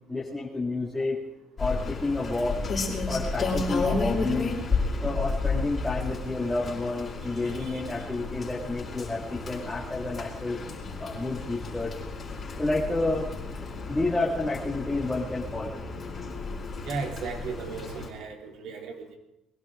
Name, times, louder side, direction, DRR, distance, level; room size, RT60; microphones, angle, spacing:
voice 1, 0.1-1.2 1.6-2.6 3.1-4.6 5.0-11.9 12.6-13.2 13.9-15.8, left 2 dB, 5° left, -6 dB, 1.9 m, -30 dB
Rain, 1.6-18.1, left 3 dB, 25° left, 4.9 m, -32 dB
voice 2, 16.8-19.2, right 5 dB, 60° right, 3 dB, 2.8 m, -36 dB
22.5 x 16.5 x 3.7 m, 0.83 s
cardioid pair, 170°, 0 cm